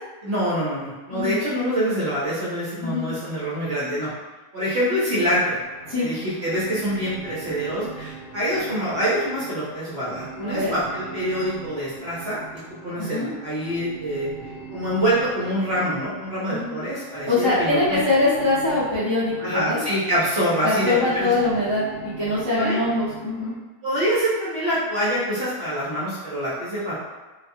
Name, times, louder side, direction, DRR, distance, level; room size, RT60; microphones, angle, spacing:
voice 1, 0.2-4.1 4.5-5.6 6.0-12.4 12.7-14.3 14.7-18.0 19.4-21.3 22.6-22.8 23.8-27.1, equal, 55° right, -9 dB, 0.9 m, -25 dB
sound 1, 5.6-23.5, right 5 dB, 75° left, 1.2 m, -41 dB
voice 2, 10.4-10.7 13.0-13.3 16.5-16.7 17.2-19.8 20.6-23.5, left 2 dB, 30° left, -13 dB, 0.5 m, -23 dB
2.6 x 2.3 x 2.5 m, 1.2 s
omnidirectional pair, 1.6 m